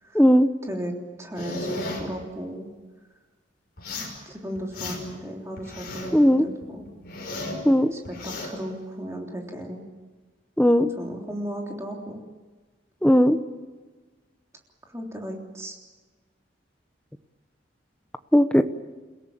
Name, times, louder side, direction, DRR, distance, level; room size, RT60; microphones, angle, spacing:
voice 1, 0.1-0.5 6.1-6.5 7.6-7.9 10.6-10.9 13.0-13.4 18.3-18.6, equal, 5° left, 9 dB, 1.0 m, -17 dB
voice 2, 1.2-2.7 4.0-6.9 7.9-9.8 11.0-12.2 14.9-15.8, equal, 15° right, 0 dB, 3.4 m, -35 dB
sound 1, 1.4-2.0 3.8-4.2 4.5-5.2 5.6-6.2 6.6-7.6 8.0-8.5, left 2 dB, 50° left, 5.6 m, -35 dB
30.0 x 17.5 x 7.4 m, 1.3 s
head